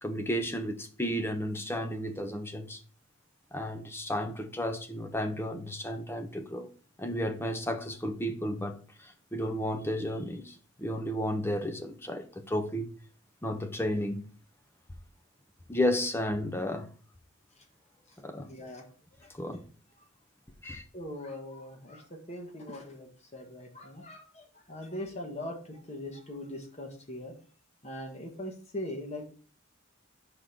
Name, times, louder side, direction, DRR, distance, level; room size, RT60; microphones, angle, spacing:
voice 1, 0.0-2.8 3.5-6.7 7.0-12.9 13.4-14.2 15.7-16.9 18.2-18.5 19.4-19.7 20.6-20.8, equal, 10° left, 0.5 m, -33 dB
voice 2, 18.4-18.8 20.9-27.3 27.8-29.3, left 1 dB, 30° left, 1.2 m, -41 dB
5.0 x 3.7 x 5.7 m
head